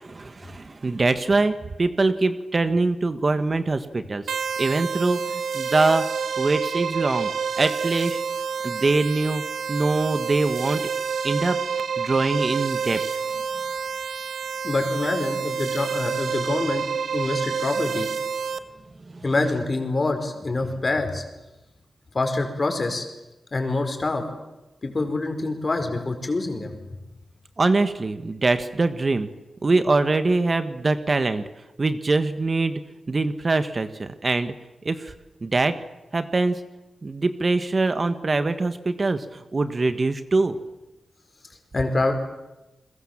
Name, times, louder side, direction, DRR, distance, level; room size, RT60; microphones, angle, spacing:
voice 1, 0.0-4.2 4.6-6.1 6.4-7.3 7.6-8.2 8.6-10.9 11.2-11.6 12.0-13.0 19.1-19.2 27.6-29.3 29.6-31.4 31.8-34.5 34.8-35.1 35.4-35.8 36.1-36.6 37.0-40.6, right 3 dB, 40° right, 10 dB, 1.4 m, -23 dB
sound 1, 4.3-18.6, right 6 dB, 85° right, 1.3 m, -28 dB
voice 2, 14.6-16.8 17.1-18.1 19.2-21.2 22.1-23.0 23.5-24.2 24.8-26.7 41.7-42.1, left 2 dB, 35° left, 5 dB, 5.0 m, -25 dB
30.0 x 21.5 x 7.4 m, 1.0 s
cardioid pair, 85°, 0 cm